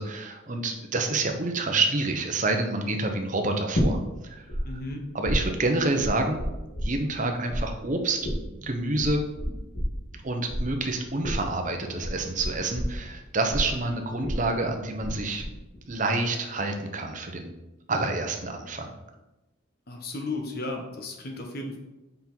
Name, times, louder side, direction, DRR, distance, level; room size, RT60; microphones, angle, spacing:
voice 1, 0.0-4.0 4.2-4.4 5.1-6.4 6.8-9.2 10.2-15.4 15.9-17.5 17.9-18.9, right 2 dB, 40° right, 4 dB, 0.8 m, -28 dB
sound 1, 3.7-4.6 4.9-7.2 7.5-15.1 15.4-15.9, equal, 70° left, 2.3 m, -30 dB
voice 2, 4.6-5.0 19.9-21.8, left 2 dB, 50° left, 2 dB, 1.2 m, -34 dB
6.0 x 5.5 x 4.5 m, 1.0 s
head